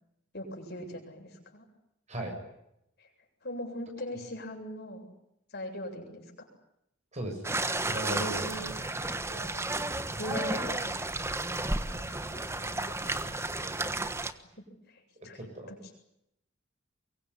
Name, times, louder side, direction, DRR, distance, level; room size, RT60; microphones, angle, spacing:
voice 1, 0.3-1.6 3.0-3.1 3.4-5.0 5.5-6.5 8.1-8.7 10.2-10.9 11.9-13.5 14.3-15.4 15.7-15.8, equal, 55° left, 2 dB, 7.9 m, -41 dB
voice 2, 7.1-8.9 9.3-9.9 15.2-15.7, right 1 dB, 35° right, 3 dB, 6.7 m, -39 dB
sound 1, 7.4-14.3, right 2 dB, 15° right, 1.3 m, -33 dB
24.0 x 23.5 x 9.8 m, 0.82 s
head